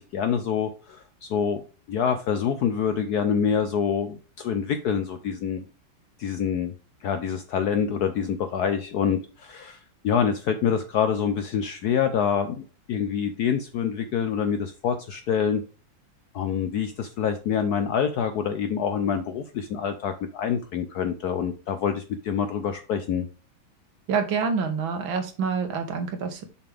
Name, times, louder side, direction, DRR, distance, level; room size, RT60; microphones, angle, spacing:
voice 1, 0.0-1.6 1.9-5.6 6.2-6.7 7.0-15.6 16.3-23.3, left 7 dB, 70° left, 8 dB, 0.9 m, -26 dB
voice 2, 24.1-26.5, right 5 dB, 75° right, 6 dB, 1.9 m, -27 dB
6.8 x 5.5 x 3.4 m, 0.35 s
omnidirectional pair, 2.2 m